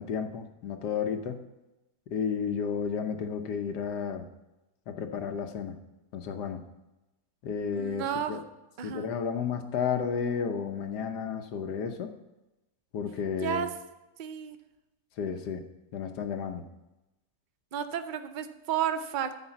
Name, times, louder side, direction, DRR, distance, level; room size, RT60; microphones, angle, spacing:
voice 1, 0.0-1.4 2.1-4.3 4.9-5.8 6.1-6.6 7.4-8.4 8.8-12.1 12.9-13.7 15.2-15.6 15.9-16.6, left 6 dB, 75° left, 6 dB, 1.5 m, -32 dB
voice 2, 7.7-8.4 8.8-9.1 13.4-13.7 14.2-14.6 17.7-19.4, right 8 dB, 80° right, 9 dB, 0.4 m, -32 dB
14.0 x 4.9 x 7.1 m, 0.99 s
omnidirectional pair, 1.8 m